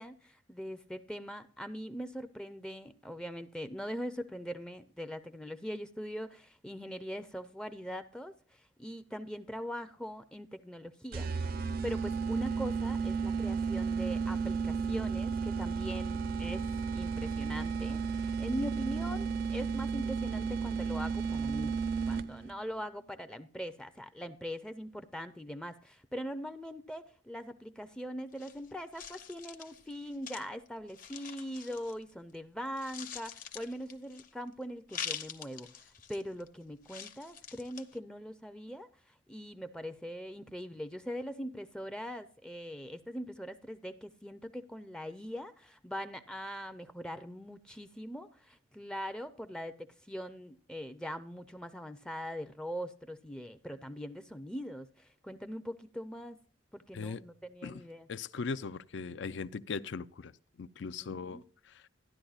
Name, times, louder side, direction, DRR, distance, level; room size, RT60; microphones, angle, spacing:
voice 1, 0.0-11.3 11.8-16.7 16.9-21.8 22.1-35.7 36.1-56.4 56.7-58.1 61.0-61.4, equal, 5° left, 0.5 m, -41 dB
sound 1, 11.1-22.5, right 5 dB, 50° right, 0.5 m, -33 dB
sound 2, 28.3-32.3 32.6-34.5 34.9-36.5 36.8-38.0, left 8 dB, 45° left, 0.9 m, -45 dB
voice 2, 58.1-60.3 60.6-61.9, left 5 dB, 65° left, 0.5 m, -39 dB
13.0 x 10.5 x 2.4 m
head